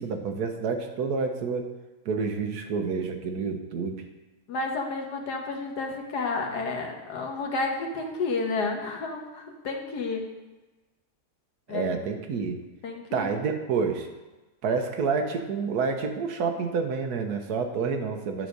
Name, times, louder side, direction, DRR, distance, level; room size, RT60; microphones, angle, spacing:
voice 1, 0.0-1.7 2.0-4.0 11.7-12.6 13.1-14.1 14.6-18.5, right 5 dB, 75° right, 5 dB, 1.4 m, -28 dB
voice 2, 4.5-10.2 11.7-12.0 12.8-13.3, left 3 dB, 80° left, 1 dB, 1.7 m, -31 dB
9.5 x 4.1 x 6.4 m, 1.2 s
omnidirectional pair, 1.7 m